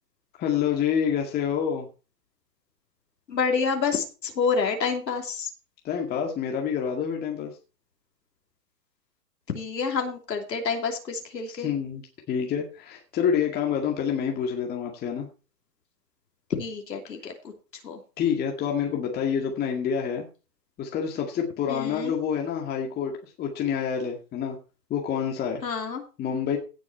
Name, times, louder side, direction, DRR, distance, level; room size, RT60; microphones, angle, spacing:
voice 1, 0.4-1.9 5.8-7.5 11.6-12.0 12.3-15.3 18.2-20.3 20.8-24.6 24.9-25.6 26.2-26.6, left 7 dB, 20° left, 1 dB, 1.9 m, -27 dB
voice 2, 3.3-5.5 9.5-11.7 16.5-18.0 21.7-22.1 25.6-26.0, left 5 dB, 80° left, 3 dB, 3.0 m, -28 dB
16.5 x 6.2 x 4.5 m, 0.33 s
hypercardioid pair, 135°, 49 cm